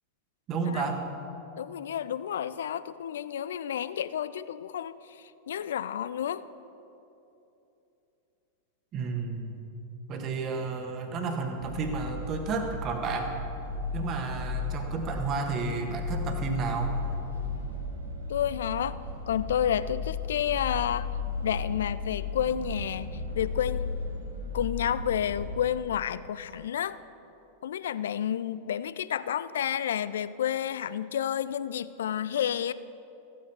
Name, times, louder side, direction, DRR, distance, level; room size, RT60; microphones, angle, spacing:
voice 1, 0.5-1.0 8.9-9.6 10.1-13.4 13.9-17.0, right 4 dB, 35° right, 4 dB, 1.5 m, -31 dB
voice 2, 1.6-6.4 18.3-19.0 19.3-21.1 21.4-23.9 24.5-27.0 27.6-32.7, left 9 dB, 60° left, 16 dB, 0.4 m, -30 dB
sound 1, 11.6-25.5, left 3 dB, 90° left, 1.9 m, -35 dB
14.5 x 9.0 x 6.1 m, 2.9 s
figure-of-eight pair, 90°, 0 cm